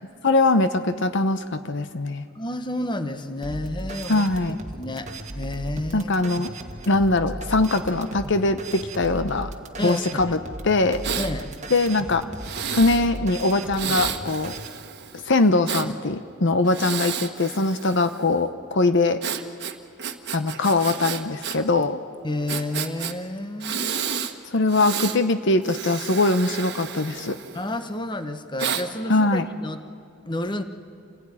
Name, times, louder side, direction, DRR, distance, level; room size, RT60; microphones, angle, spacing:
voice 1, 0.2-2.3 4.1-4.6 5.9-6.5 6.9-9.5 9.8-10.4 10.6-11.0 11.7-12.2 12.7-14.6 15.3-19.2 20.3-22.0 24.5-27.4 29.1-29.5, left 2 dB, 65° left, 10 dB, 0.9 m, -22 dB
voice 2, 2.3-4.2 4.8-5.1 5.3-6.1 9.8-10.4 11.2-11.5 22.2-23.9 27.5-29.8 30.2-30.6, left 1 dB, 25° left, 9 dB, 1.2 m, -30 dB
sound 1, 3.4-14.7, right 2 dB, 35° right, 1.5 m, -36 dB
Breathing, 11.0-11.3 12.4-13.0 13.7-15.9 16.6-18.3 19.2-21.6 21.8-21.9 22.5-23.1 23.6-24.3 24.7-25.2 25.6-27.8 28.6-28.8, right 8 dB, 55° right, 1.4 m, -31 dB
27.5 x 16.5 x 10.0 m, 2.4 s
head